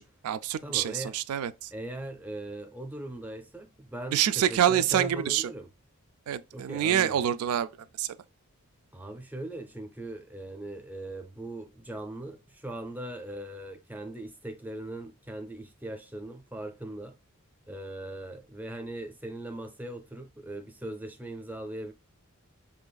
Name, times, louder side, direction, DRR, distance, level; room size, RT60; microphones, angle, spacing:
voice 1, 0.0-1.7 4.1-5.5 6.3-7.7 8.0-8.1, right 10 dB, 75° right, 0.3 m, -26 dB
voice 2, 0.6-1.1 1.7-5.7 6.5-7.2 8.9-17.2 17.7-21.9, right 1 dB, 5° right, 0.5 m, -39 dB
5.4 x 2.5 x 2.2 m
head